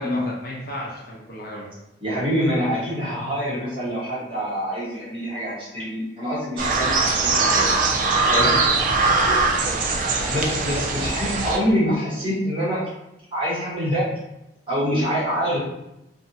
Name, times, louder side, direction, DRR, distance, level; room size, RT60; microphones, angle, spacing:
voice 1, 0.0-1.7 8.4-9.9, left 1 dB, 55° left, -4 dB, 0.6 m, -34 dB
voice 2, 2.0-7.7 8.2-8.5 10.1-12.8 13.3-14.0 14.7-15.6, equal, 30° right, -8 dB, 1.1 m, -25 dB
sound 1, 6.6-11.6, right 3 dB, 45° right, 0.3 m, -21 dB
2.6 x 2.4 x 2.6 m, 0.86 s
head